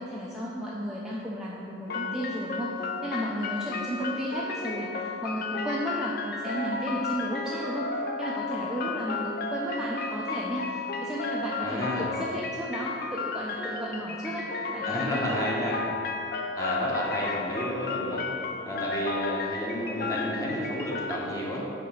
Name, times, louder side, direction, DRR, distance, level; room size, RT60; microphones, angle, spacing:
voice 1, 0.0-7.9 8.2-15.5, equal, 5° right, -6 dB, 0.5 m, -34 dB
sound 1, 1.9-21.2, left 4 dB, 55° left, 0.5 m, -33 dB
voice 2, 11.6-12.1 14.8-15.8 16.5-18.2 18.6-21.6, equal, 20° left, -4 dB, 1.0 m, -31 dB
5.0 x 4.7 x 5.5 m, 2.6 s
head